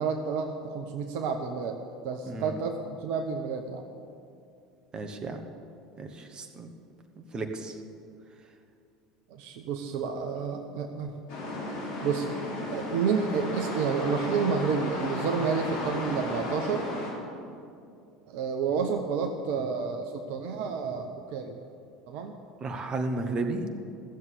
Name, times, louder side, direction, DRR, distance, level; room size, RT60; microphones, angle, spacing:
voice 1, 0.0-1.8 2.0-3.9 9.3-11.2 12.0-12.3 12.7-16.9 18.3-21.5 22.1-22.3, right 5 dB, 60° right, 4 dB, 0.9 m, -30 dB
voice 2, 2.2-2.6 4.9-5.4 6.0-6.7 7.1-7.8 22.6-23.6, right 3 dB, 30° right, 5 dB, 1.4 m, -33 dB
sound 1, 11.3-17.1, left 1 dB, 60° left, 3.2 m, -34 dB
14.5 x 7.3 x 8.3 m, 2.5 s
hypercardioid pair, 70°, 3 cm